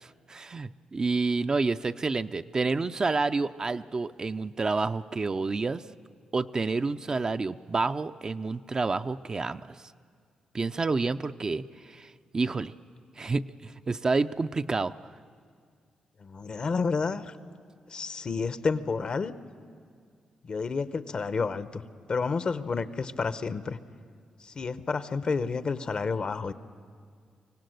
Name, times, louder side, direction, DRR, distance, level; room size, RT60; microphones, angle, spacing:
voice 1, 0.0-5.8 6.3-9.6 10.5-12.7 13.2-14.9, right 3 dB, 35° right, 10 dB, 0.5 m, -29 dB
voice 2, 16.2-17.3 17.9-19.3 20.4-21.8 22.1-23.8 24.4-26.5, left 4 dB, 45° left, 13 dB, 0.8 m, -30 dB
24.5 x 17.5 x 7.9 m, 2.1 s
cardioid pair, 80°, 2 cm